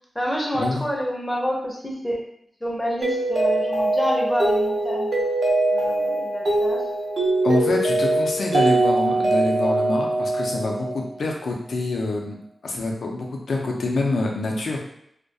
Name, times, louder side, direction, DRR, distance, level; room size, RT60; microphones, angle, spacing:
voice 1, 0.1-2.2 2.6-5.1 5.7-6.8, equal, 10° left, -1 dB, 0.5 m, -28 dB
Mallet percussion, 3.0-11.2, right 2 dB, 55° right, 0.5 m, -22 dB
voice 2, 7.4-12.4 12.6-14.8, left 2 dB, 75° left, 0 dB, 0.4 m, -26 dB
2.3 x 2.1 x 2.7 m, 0.73 s
wide cardioid pair, 95°, 0 cm